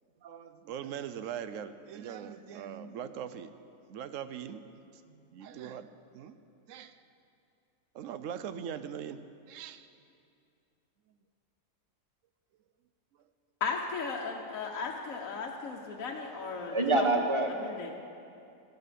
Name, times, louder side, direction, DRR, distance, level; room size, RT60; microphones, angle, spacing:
voice 1, 0.2-3.5 3.9-4.6 5.1-6.4 6.7-7.0 7.9-9.2 9.5-9.9, right 8 dB, 70° right, 12 dB, 0.9 m, -41 dB
voice 2, 13.6-17.1 17.6-17.9, left 5 dB, 75° left, 0 dB, 1.3 m, -36 dB
voice 3, 16.5-17.6, right 2 dB, 25° right, 2 dB, 1.0 m, -27 dB
15.0 x 12.0 x 5.1 m, 2.5 s
omnidirectional pair, 1.5 m